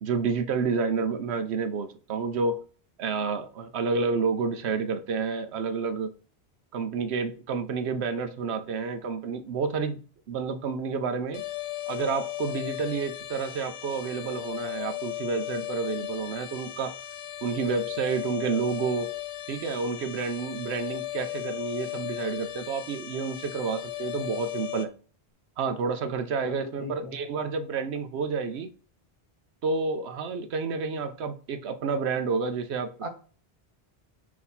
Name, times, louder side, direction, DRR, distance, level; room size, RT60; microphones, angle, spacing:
voice 1, 0.0-2.6 3.0-6.1 6.7-10.0 10.3-11.4 11.9-17.0 17.4-19.1 19.5-24.9 25.6-28.7 29.6-32.9, right 5 dB, 80° right, 0.9 m, -29 dB
sound 1, 11.3-24.9, left 15 dB, 85° left, 1.0 m, -36 dB
voice 2, 26.4-27.2 33.0-33.1, left 1 dB, 30° right, 1.3 m, -37 dB
6.2 x 2.8 x 5.6 m
omnidirectional pair, 1.1 m